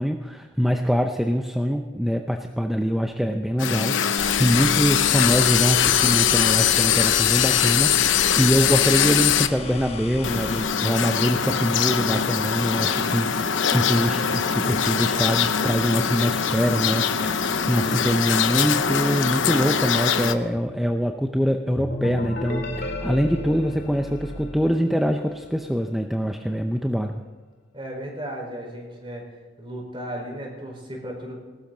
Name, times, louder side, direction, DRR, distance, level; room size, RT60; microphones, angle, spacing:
voice 1, 0.0-27.2, equal, ahead, 4 dB, 0.6 m, -24 dB
sound 1, 3.6-9.5 10.2-20.3, left 8 dB, 85° left, 0.9 m, -22 dB
sound 2, 4.2-10.6, left 3 dB, 30° left, 1.4 m, -34 dB
sound 3, 21.8-25.5, left 1 dB, 55° left, 2.4 m, -33 dB
voice 2, 27.7-29.3 29.6-31.4, equal, 25° right, 0 dB, 4.7 m, -35 dB
19.5 x 13.0 x 4.0 m, 1.4 s
head